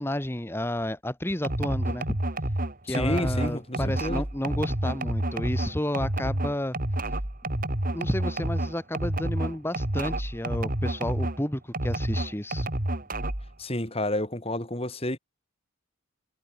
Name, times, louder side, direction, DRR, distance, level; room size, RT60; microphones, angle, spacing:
voice 1, 0.0-2.2 2.8-6.8 7.9-12.7, left 1 dB, 10° left, 1.3 m, -31 dB
sound 1, 1.4-11.4 11.7-13.5, right 1 dB, 40° right, 2.4 m, -29 dB
voice 2, 2.9-4.2 13.6-15.2, left 1 dB, 30° left, 4.3 m, -30 dB
head